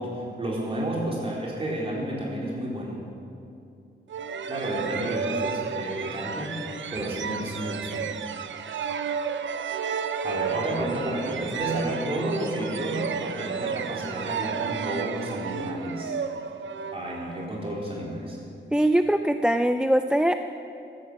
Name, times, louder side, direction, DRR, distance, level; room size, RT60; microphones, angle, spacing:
voice 1, 0.0-3.1 4.4-8.0 10.2-16.2 16.9-18.4, right 1 dB, 30° right, -4 dB, 4.0 m, -31 dB
sound 1, 4.1-17.6, right 6 dB, 80° right, 0.6 m, -32 dB
voice 2, 18.7-20.3, right 1 dB, 5° right, 8 dB, 0.4 m, -22 dB
15.0 x 12.0 x 7.4 m, 2.6 s
wide cardioid pair, 145°, 19 cm